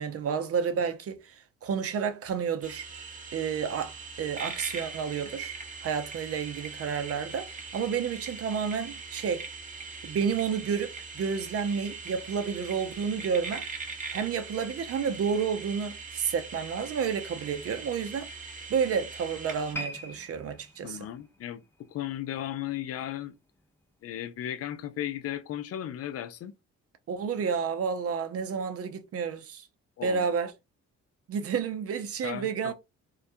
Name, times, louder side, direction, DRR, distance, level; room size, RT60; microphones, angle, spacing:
voice 1, 0.0-2.9 3.3-9.5 10.0-13.7 14.1-18.3 18.7-21.1 27.1-29.7 30.0-30.5 31.3-32.7, right 6 dB, 50° right, 0.6 m, -30 dB
sound 1, 2.6-19.7, right 4 dB, 25° right, 0.9 m, -41 dB
sound 2, 19.7-23.0 23.3-23.6 24.3-24.4, left 1 dB, 5° left, 0.6 m, -43 dB
voice 2, 20.8-23.3 24.0-26.5 30.0-30.3 32.2-32.7, left 11 dB, 55° left, 0.4 m, -36 dB
2.3 x 2.2 x 2.6 m
cardioid pair, 90°, 30 cm